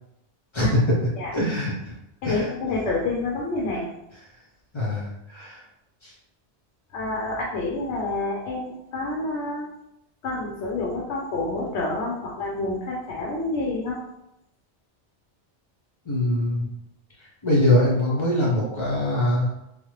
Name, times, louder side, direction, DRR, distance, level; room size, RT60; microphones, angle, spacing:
voice 1, 1.3-1.9 2.2-2.4 4.7-5.6 6.0-6.1 16.1-16.7 17.4-19.5, left 1 dB, 30° left, -4 dB, 0.6 m, -23 dB
voice 2, 2.2-3.9 6.9-9.6 10.2-14.0, left 2 dB, 75° left, -3 dB, 0.9 m, -28 dB
3.1 x 2.0 x 3.1 m, 0.85 s
omnidirectional pair, 1.2 m